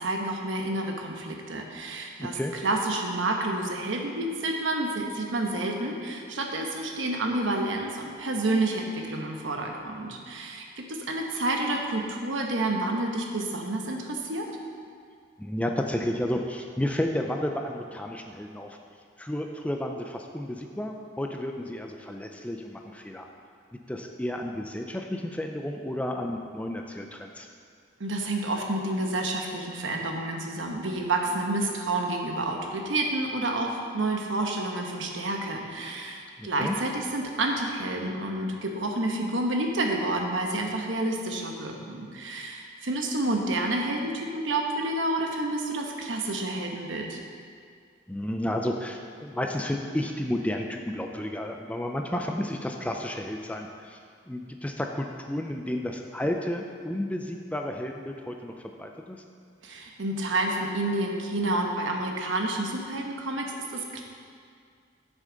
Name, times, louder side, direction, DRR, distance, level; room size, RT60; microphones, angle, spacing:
voice 1, 0.0-2.4 2.6-14.5 28.0-47.2 59.6-64.0, right 2 dB, 80° right, 2 dB, 1.1 m, -29 dB
voice 2, 2.2-2.5 15.4-18.8 19.2-23.3 23.7-27.5 36.4-36.8 48.1-54.0 54.3-58.5 58.8-59.2, left 1 dB, 5° left, 3 dB, 0.4 m, -32 dB
11.0 x 6.4 x 3.9 m, 2.3 s
head